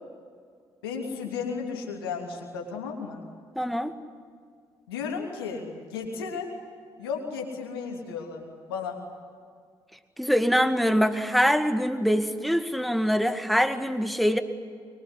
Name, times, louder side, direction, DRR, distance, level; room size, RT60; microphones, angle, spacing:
voice 1, 0.8-3.2 4.9-6.5 7.0-8.4 8.7-9.0, left 5 dB, 80° left, 1 dB, 3.2 m, -34 dB
voice 2, 3.6-4.0 10.2-14.4, equal, ahead, 8 dB, 2.1 m, -24 dB
24.5 x 22.0 x 9.9 m, 2.1 s
figure-of-eight pair, 40°, 12 cm